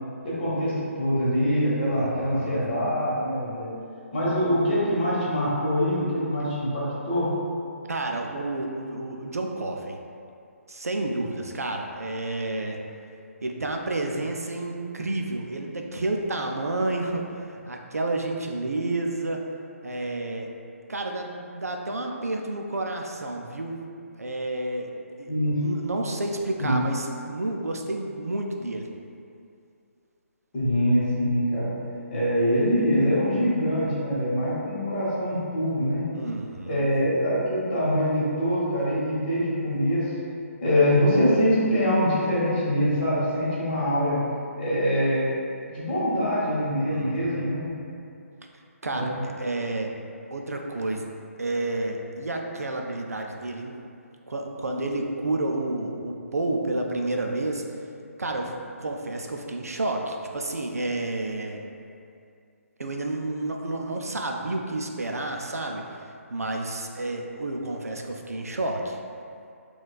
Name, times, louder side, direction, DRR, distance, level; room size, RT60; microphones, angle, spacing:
voice 1, 0.2-3.7 4.1-7.3 25.3-25.7 26.6-26.8 30.5-31.7 32.1-36.1 36.7-40.1 40.6-44.2 44.6-45.3 45.6-47.7 48.9-49.2, equal, 40° left, -8 dB, 1.0 m, -24 dB
voice 2, 1.9-2.6 7.9-10.0 10.7-12.8 13.4-19.4 19.8-20.5 20.9-23.8 24.2-24.9 25.2-25.3 25.6-28.9 36.1-36.9 46.9-47.5 48.8-49.9 50.3-51.1 51.4-53.7 54.3-57.8 58.2-61.6 62.8-66.0 66.3-69.0, right 2 dB, 85° right, 2 dB, 0.3 m, -30 dB
4.1 x 2.2 x 2.2 m, 2.5 s
figure-of-eight pair, 140°, 8 cm